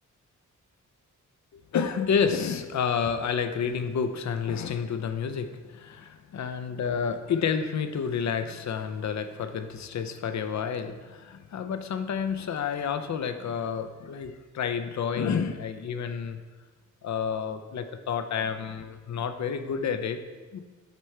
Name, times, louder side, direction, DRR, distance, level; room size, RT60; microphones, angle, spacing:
voice 1, 1.5-16.4 17.0-20.2 20.5-20.6, left 6 dB, 60° left, 9 dB, 0.5 m, -30 dB
8.2 x 3.2 x 4.3 m, 1.3 s
wide cardioid pair, 110°, 32 cm